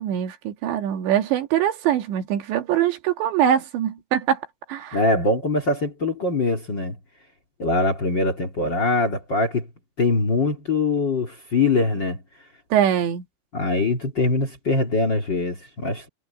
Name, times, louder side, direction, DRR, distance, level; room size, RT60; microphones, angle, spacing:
voice 1, 0.0-4.4 4.7-5.0 12.7-13.2, right 10 dB, 80° right, 4.3 m, -23 dB
voice 2, 4.9-6.9 7.6-9.6 10.0-12.2 13.5-16.1, left 2 dB, 35° left, 2.2 m, -22 dB
omnidirectional pair, 5.1 m